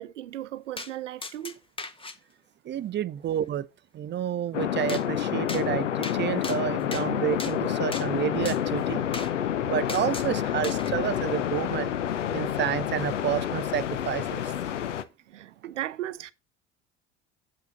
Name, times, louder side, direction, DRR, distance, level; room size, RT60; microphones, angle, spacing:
voice 1, 0.0-1.5 15.3-16.3, right 13 dB, 80° right, 0.7 m, -36 dB
sound 1, 0.8-0.9 1.2-2.2 4.9-5.0 5.5-5.6 6.0-6.2 6.4-7.1 7.4-7.5 7.9-8.1 8.5-8.6 9.1-9.3 9.9-10.3 10.6-10.9, left 3 dB, 15° left, 1.2 m, -37 dB
voice 2, 2.7-3.7 3.9-9.0 9.6-11.9 12.3-14.4, right 10 dB, 30° right, 0.6 m, -29 dB
sound 2, 4.5-15.0, left 10 dB, 85° left, 0.8 m, -29 dB
8.5 x 8.2 x 3.9 m
hypercardioid pair, 65°, 36 cm